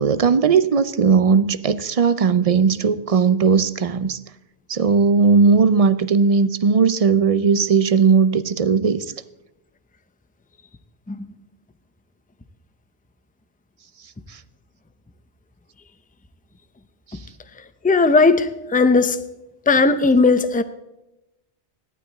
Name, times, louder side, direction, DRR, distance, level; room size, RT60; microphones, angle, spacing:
voice 1, 0.0-4.2 4.7-9.1, right 5 dB, 45° right, 0.5 m, -17 dB
voice 2, 17.8-19.2 19.7-20.6, left 3 dB, 10° left, 0.6 m, -16 dB
16.5 x 12.0 x 4.1 m
omnidirectional pair, 1.0 m